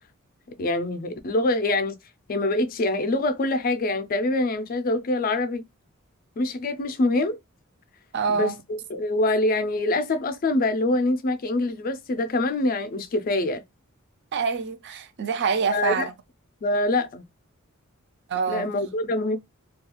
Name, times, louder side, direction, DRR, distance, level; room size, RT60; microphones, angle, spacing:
voice 1, 0.6-2.0 2.3-5.6 6.4-7.4 8.3-13.6 15.7-16.1 16.6-17.2 18.5-19.4, left 2 dB, 45° left, 0.4 m, -25 dB
voice 2, 8.1-8.6 14.3-16.1 18.3-18.7, right 5 dB, 55° right, 0.4 m, -26 dB
2.3 x 2.3 x 2.9 m
head